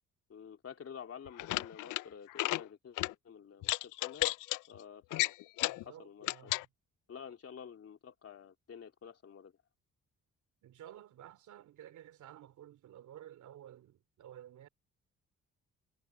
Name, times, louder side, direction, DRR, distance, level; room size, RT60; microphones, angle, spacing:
voice 1, 0.3-4.3 4.7-5.3 5.8-6.5 7.1-9.5, left 7 dB, 50° left, 3.1 m, -50 dB
sound 1, 1.3-2.0 2.3-2.6 3.0-3.1 3.6-4.6 5.1-5.8 6.2-6.7, left 19 dB, 80° left, 0.5 m, -33 dB
voice 2, 5.7-6.7 10.6-14.7, right 11 dB, 75° right, 2.9 m, -53 dB
cardioid pair, 90°, 30 cm